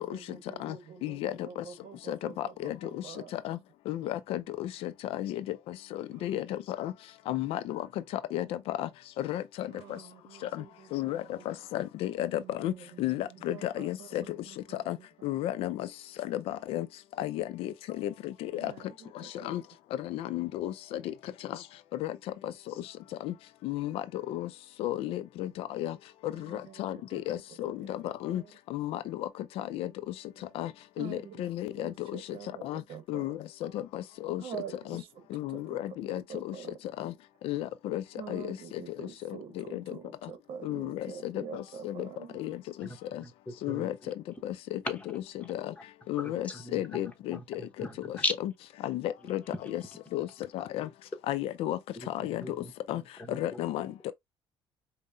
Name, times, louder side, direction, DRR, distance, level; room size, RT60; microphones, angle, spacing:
voice 1, 0.0-3.3 6.1-6.4 9.7-11.4 12.3-14.8 15.2-15.3 18.5-19.6 26.3-27.2 27.8-27.9 28.3-28.5 31.0-31.5 31.8-33.3 34.4-35.8 36.3-36.8 38.1-42.4, right 7 dB, 70° right, 0.9 m, -46 dB
voice 2, 1.0-1.6 2.1-3.0 3.3-3.6 3.9-6.9 7.3-7.9 8.3-8.9 9.2-10.0 10.5-10.6 10.9-12.7 13.0-14.2 14.9-15.0 15.2-15.9 16.3-16.9 17.2-18.7 19.4-19.6 20.0-21.1 21.5-21.6 22.0-22.2 22.4-22.7 23.2-23.3 23.6-24.5 24.8-26.0 26.2-28.4 28.7-29.3 29.6-29.9 30.5-30.7 31.0-32.2 32.6-32.8 33.1-34.4 34.9-35.0 35.3-36.5 37.0-37.1 37.4-38.6 39.3-39.9 40.6-42.1 42.3-42.9 43.1-43.2 43.6-44.1 44.4-45.7 46.1-47.6 48.1-48.5 48.8-49.4 49.7-49.8 50.1-50.3 50.5-50.9 51.3-51.8 52.1-52.6 52.9-53.0 53.3-54.1, left 13 dB, 75° left, 0.4 m, -34 dB
voice 3, 42.8-43.9 44.9-45.0 45.4-45.5 46.2-48.3 52.0-53.6, left 2 dB, 15° left, 0.9 m, -39 dB
5.4 x 2.1 x 2.6 m
cardioid pair, 120°, 10 cm